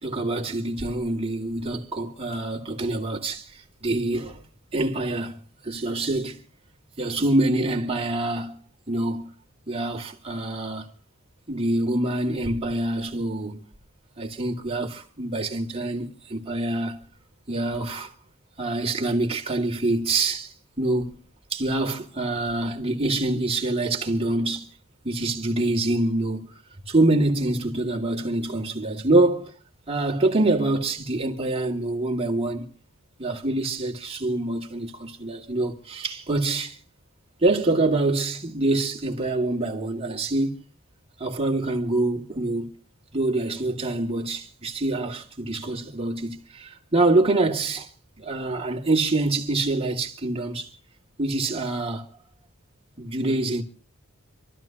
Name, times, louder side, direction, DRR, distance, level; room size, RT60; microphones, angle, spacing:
voice 1, 0.0-4.4 4.7-6.4 7.0-8.6 8.9-9.3 9.7-10.9 11.5-13.6 14.2-17.0 17.5-18.1 18.6-21.2 21.5-24.7 25.0-26.6 26.9-29.5 29.9-32.7 33.2-36.8 37.4-40.6 41.2-42.7 43.1-47.9 48.2-50.7 51.2-52.1 53.0-53.6, right 2 dB, 30° right, 2.4 m, -25 dB
27.5 x 13.5 x 3.0 m
head